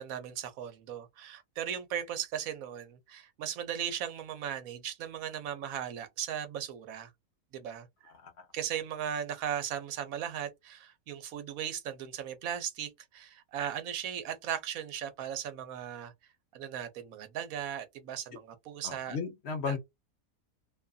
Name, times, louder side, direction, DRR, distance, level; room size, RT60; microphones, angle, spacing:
voice 1, 0.0-7.1 7.5-7.9 8.5-16.1 16.5-19.2 19.7-19.8, right 9 dB, 70° right, 1.1 m, -37 dB
voice 2, 18.8-19.8, left 5 dB, 55° left, 0.8 m, -35 dB
2.7 x 2.4 x 2.3 m
omnidirectional pair, 1.6 m